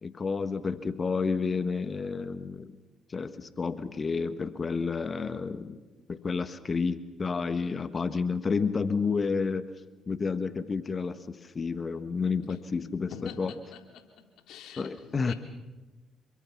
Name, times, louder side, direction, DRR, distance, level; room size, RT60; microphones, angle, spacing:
voice 1, 0.0-2.8 3.1-5.8 6.1-9.7 10.1-13.5 14.8-15.3, left 5 dB, 40° left, 11 dB, 1.4 m, -30 dB
voice 2, 13.1-14.0 14.5-15.3, left 7 dB, 75° left, 4 dB, 3.5 m, -45 dB
28.0 x 23.5 x 6.0 m, 1.1 s
hypercardioid pair, 60°, 0 cm